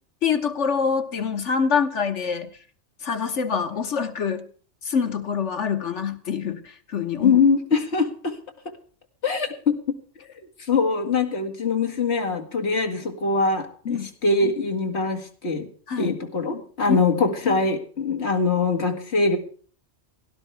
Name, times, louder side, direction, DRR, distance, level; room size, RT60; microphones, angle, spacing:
voice 1, 0.2-2.5 3.0-4.5 4.9-7.4 13.9-14.1 15.9-16.2 16.9-17.0, left 6 dB, 85° left, 1.6 m, -25 dB
voice 2, 7.2-8.4 9.2-9.8 10.7-15.7 16.0-19.4, left 4 dB, 70° left, 2.2 m, -23 dB
18.0 x 11.5 x 3.4 m
omnidirectional pair, 1.2 m